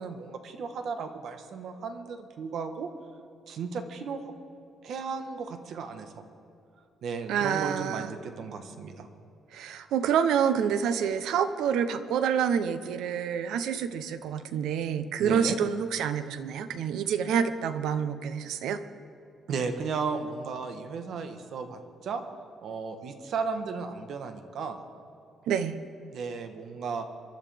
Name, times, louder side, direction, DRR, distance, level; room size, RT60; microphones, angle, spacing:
voice 1, 0.0-2.9 3.5-4.3 4.8-6.2 7.0-9.1 15.2-15.6 19.5-22.2 22.6-24.8 26.1-27.1, right 5 dB, 60° right, 7 dB, 1.2 m, -35 dB
voice 2, 7.3-8.1 9.5-18.8 25.5-25.7, right 8 dB, 85° right, 11 dB, 0.8 m, -27 dB
24.5 x 12.0 x 3.5 m, 2.7 s
cardioid pair, 140°, 0 cm